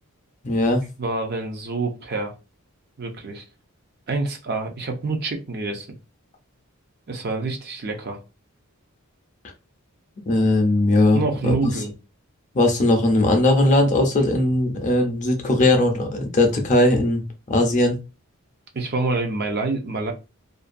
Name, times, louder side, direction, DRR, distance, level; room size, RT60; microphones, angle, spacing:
voice 1, 0.4-0.8 10.3-11.5 12.5-17.2 17.5-18.0, left 2 dB, 35° left, 4 dB, 0.5 m, -19 dB
voice 2, 1.0-2.3 3.0-3.4 4.1-5.9 7.1-8.2 11.1-11.9 18.7-20.1, right 3 dB, 45° right, 3 dB, 0.5 m, -27 dB
2.5 x 2.2 x 2.5 m, 0.29 s
head